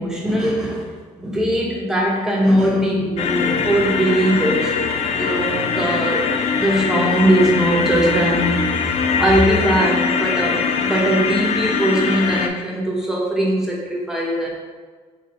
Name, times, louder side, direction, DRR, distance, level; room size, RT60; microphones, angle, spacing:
voice 1, 0.0-4.7 5.1-6.3 6.6-14.5, right 1 dB, 5° right, -3 dB, 1.1 m, -20 dB
sound 1, 3.2-12.5, left 5 dB, 55° left, 0.4 m, -22 dB
3.5 x 3.4 x 4.4 m, 1.5 s
cardioid pair, 125°, 13 cm